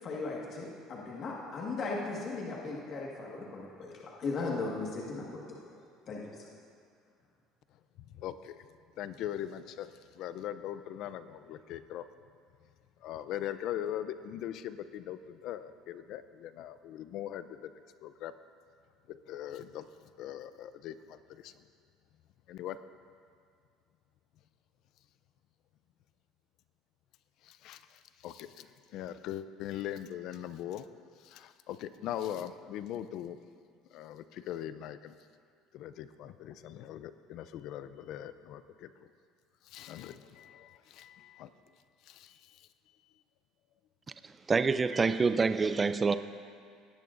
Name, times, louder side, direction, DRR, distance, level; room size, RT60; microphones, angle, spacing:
voice 1, 0.0-5.4 6.1-6.4, left 3 dB, 45° left, -3 dB, 1.6 m, -37 dB
voice 2, 8.1-8.7 9.0-12.1 13.0-17.7 18.0-18.3 19.1-19.9 20.2-21.5 22.5-22.8 27.4-30.9 31.2-33.4 33.9-35.1 35.7-38.9 39.6-41.5 42.0-42.7, left 11 dB, 60° left, 13 dB, 0.4 m, -41 dB
voice 3, 44.5-46.2, right 4 dB, 20° right, 11 dB, 0.3 m, -26 dB
17.5 x 10.5 x 2.5 m, 2.2 s
cardioid pair, 120°, 0 cm